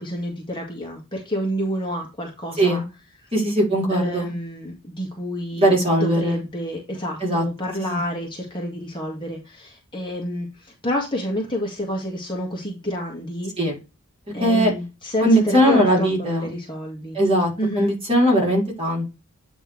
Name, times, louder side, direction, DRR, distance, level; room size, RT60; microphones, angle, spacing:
voice 1, 0.0-2.8 3.9-13.5 14.3-17.2 17.6-17.9, equal, 20° left, 1.9 m, -29 dB
voice 2, 3.3-4.3 5.6-6.4 7.2-7.4 7.8-8.0 13.6-13.7 14.4-14.7 15.2-16.5 17.1-17.5 17.8-19.1, equal, 25° right, 4.0 m, -19 dB
9.1 x 3.5 x 4.7 m
head